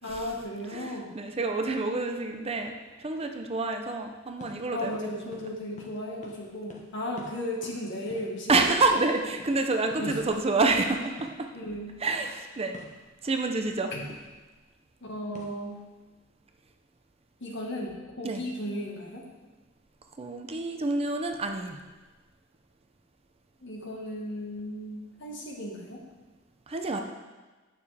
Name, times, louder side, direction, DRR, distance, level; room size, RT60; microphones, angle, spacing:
voice 1, 0.0-1.2 2.6-2.7 4.7-8.8 10.0-10.2 11.5-11.9 13.9-14.1 15.0-15.8 17.4-19.2 23.6-26.0, left 1 dB, 60° left, -2 dB, 1.6 m, -35 dB
voice 2, 0.7-5.4 8.5-11.5 12.0-12.8 13.2-13.9 18.2-18.4 20.2-21.8 26.7-27.0, right 3 dB, 30° right, 4 dB, 0.6 m, -28 dB
sound 1, 4.4-4.5 4.8-5.0 5.3-5.5 5.8-6.0 6.2-6.4 6.7-6.8 7.2-7.3 7.6-7.8 8.1-9.0 9.4-9.5 9.9-10.1 10.3-10.5 10.8-10.9 11.2-11.3 12.7-13.0 14.1-14.3 15.3-15.6, left 1 dB, 35° left, 1.1 m, -47 dB
9.4 x 6.7 x 3.4 m, 1.3 s
head